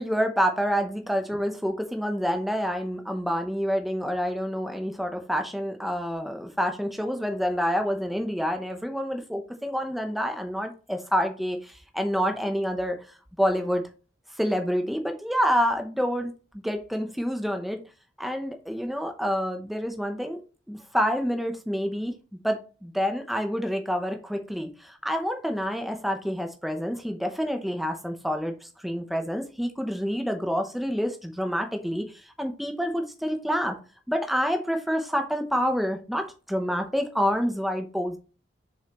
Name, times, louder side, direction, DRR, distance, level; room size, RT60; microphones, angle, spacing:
voice 1, 0.0-13.0 13.4-13.9 14.3-17.8 18.2-20.4 20.7-22.1 22.4-33.8 34.1-38.2, equal, ahead, 5 dB, 0.7 m, -28 dB
6.8 x 5.4 x 3.0 m, 0.34 s
head